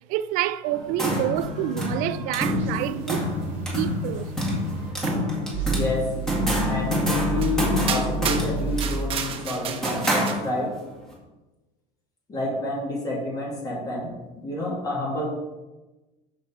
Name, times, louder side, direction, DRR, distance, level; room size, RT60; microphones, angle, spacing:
voice 1, 0.1-3.3 3.7-4.3 5.1-5.2, right 14 dB, 60° right, 0.4 m, -28 dB
sound 1, 0.7-10.9, left 1 dB, 5° left, 1.9 m, -27 dB
sound 2, 2.6-4.9 5.5-9.1, right 4 dB, 15° right, 2.7 m, -32 dB
voice 2, 5.7-6.1 6.6-10.7 12.3-14.1 14.4-15.3, left 2 dB, 25° left, 2.3 m, -29 dB
sound 3, 6.7-6.8 7.4-7.6 7.9-10.3, right 8 dB, 35° right, 0.8 m, -31 dB
6.6 x 6.3 x 4.4 m
cardioid pair, 150°, 16 cm